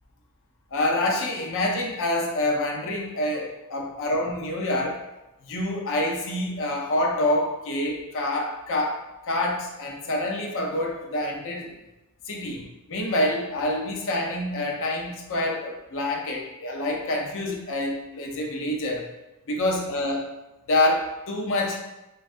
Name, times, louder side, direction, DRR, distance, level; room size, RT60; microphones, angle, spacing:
voice 1, 0.7-5.0 5.4-9.0 9.3-11.7 12.3-12.6 12.9-19.1 19.5-20.3 20.7-21.8, left 1 dB, 60° left, 1 dB, 0.5 m, -26 dB
3.2 x 2.3 x 2.5 m, 0.97 s
head